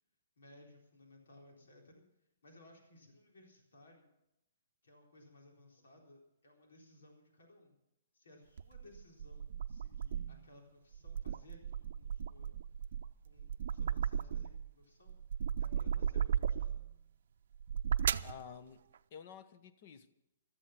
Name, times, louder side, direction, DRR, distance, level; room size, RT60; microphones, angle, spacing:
voice 1, 0.4-2.0 2.4-4.1 4.8-7.8 8.1-12.6 13.2-15.2 15.6-16.8, left 1 dB, 90° left, 4.2 m, -60 dB
sound 1, 8.6-10.5 10.9-14.7 15.1-16.9 17.5-18.4, right 8 dB, 60° right, 0.6 m, -35 dB
voice 2, 18.2-18.8 19.1-20.1, left 7 dB, 40° left, 1.1 m, -51 dB
16.0 x 13.5 x 5.9 m
hypercardioid pair, 165°, 0 cm